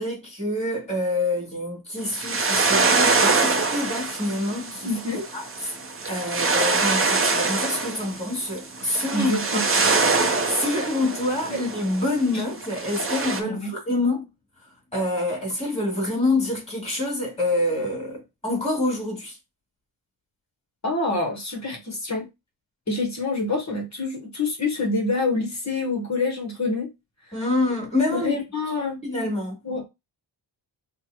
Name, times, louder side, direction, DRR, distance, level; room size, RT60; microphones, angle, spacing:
voice 1, 0.0-5.7 6.1-9.6 10.5-14.2 14.9-19.4 27.3-28.4 29.0-29.5, left 2 dB, 15° left, 2.7 m, -26 dB
sound 1, 2.0-12.3 12.6-13.4, right 3 dB, 30° right, 0.7 m, -24 dB
voice 2, 4.8-5.2 9.1-9.9 11.5-11.6 12.3-12.4 13.4-13.7 20.8-22.3 22.9-26.9 28.1-29.0 29.6-29.9, left 3 dB, 35° left, 1.1 m, -27 dB
6.1 x 2.2 x 2.9 m
wide cardioid pair, 105°, 46 cm